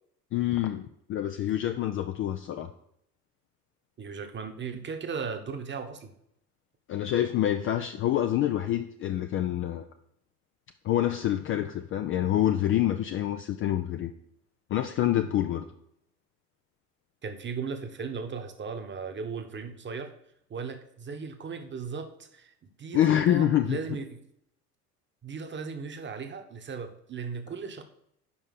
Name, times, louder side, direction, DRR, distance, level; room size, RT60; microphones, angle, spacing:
voice 1, 0.3-2.7 6.9-9.8 10.8-14.1 14.7-15.7 22.9-23.8, left 12 dB, 30° left, 7 dB, 0.4 m, -26 dB
voice 2, 4.0-6.1 17.2-20.1 20.5-22.5 22.8-24.2 25.2-27.8, right 5 dB, 25° right, 6 dB, 1.1 m, -37 dB
5.6 x 5.3 x 6.6 m, 0.74 s
figure-of-eight pair, 65°, 46 cm